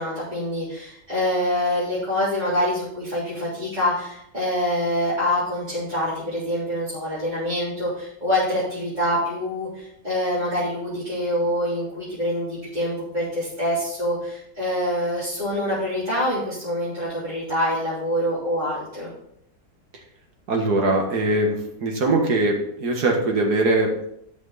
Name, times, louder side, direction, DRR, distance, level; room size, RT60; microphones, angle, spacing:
voice 1, 0.0-19.1, left 1 dB, 25° right, -12 dB, 3.4 m, -25 dB
voice 2, 20.5-24.1, right 2 dB, 80° right, 1 dB, 2.2 m, -21 dB
11.5 x 6.2 x 4.1 m, 0.74 s
omnidirectional pair, 1.7 m